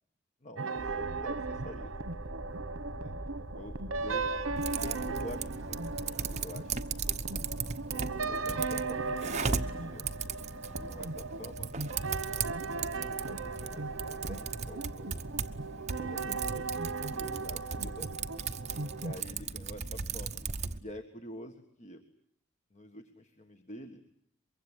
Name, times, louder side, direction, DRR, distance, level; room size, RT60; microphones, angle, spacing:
voice 1, 0.4-1.9 3.0-3.7 4.0-4.3 4.7-7.2 7.9-10.1 10.7-11.7 12.9-15.4 16.0-18.1 18.9-20.4 20.8-22.0 22.7-24.0, left 1 dB, 35° left, 6 dB, 1.6 m, -48 dB
sound 1, 0.6-19.2, right 3 dB, 80° right, 1.2 m, -37 dB
sound 2, 0.8-6.0, right 1 dB, 10° left, 2.7 m, -44 dB
Typing, 4.6-20.8, right 5 dB, 35° right, 1.0 m, -37 dB
24.0 x 23.5 x 10.0 m, 0.69 s
head